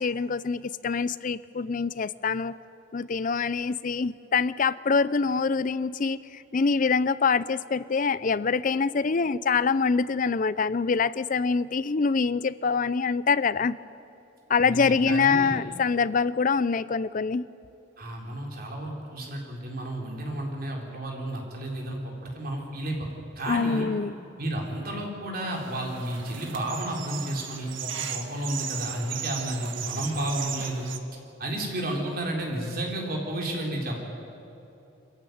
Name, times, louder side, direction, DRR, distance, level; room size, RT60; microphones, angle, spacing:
voice 1, 0.0-2.5 2.9-13.8 14.5-17.5 23.5-24.1, left 5 dB, 40° left, 17 dB, 0.5 m, -25 dB
voice 2, 14.6-15.6 18.0-23.1 23.4-23.9 24.4-30.9 31.4-34.0, right 1 dB, 45° right, 0 dB, 3.9 m, -32 dB
sound 1, 25.5-31.0, right 8 dB, 75° right, 1.5 m, -36 dB
23.5 x 15.0 x 9.4 m, 2.9 s
head